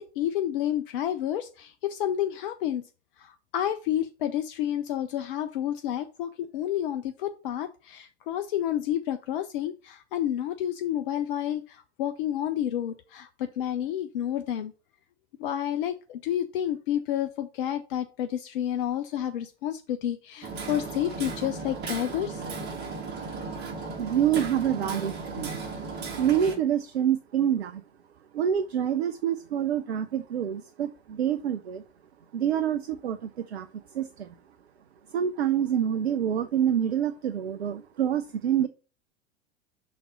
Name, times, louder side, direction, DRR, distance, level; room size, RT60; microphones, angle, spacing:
voice 1, 0.0-2.8 3.2-14.7 15.4-22.4, left 11 dB, 50° left, 0.7 m, -30 dB
Hammer, 20.4-26.6, right 4 dB, 30° right, 2.0 m, -36 dB
voice 2, 24.0-25.7 26.2-27.8 28.3-31.8 32.3-34.3 35.1-38.7, right 9 dB, 65° right, 0.6 m, -27 dB
5.9 x 4.2 x 6.2 m
figure-of-eight pair, 85°, 34 cm